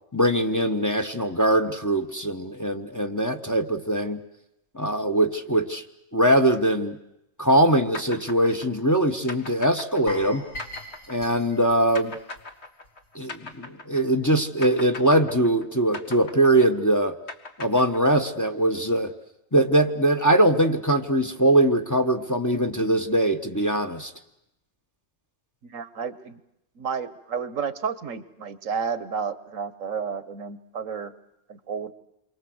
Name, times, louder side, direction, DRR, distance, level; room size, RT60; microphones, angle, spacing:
voice 1, 0.1-4.2 4.7-5.8 6.1-7.0 7.4-10.4 11.1-12.1 13.1-17.1 17.6-19.1 19.5-24.1, right 1 dB, 15° left, 6 dB, 1.3 m, -22 dB
sound 1, 7.9-14.3 14.6-18.5, left 3 dB, 55° left, 2.2 m, -40 dB
sound 2, 10.1-13.1 13.3-13.5 14.0-14.1, left 1 dB, 80° left, 5.3 m, -40 dB
voice 2, 25.6-26.4 26.8-31.1 31.5-31.9, right 6 dB, 75° right, 14 dB, 1.6 m, -31 dB
28.5 x 24.0 x 8.0 m, 0.84 s
omnidirectional pair, 1.4 m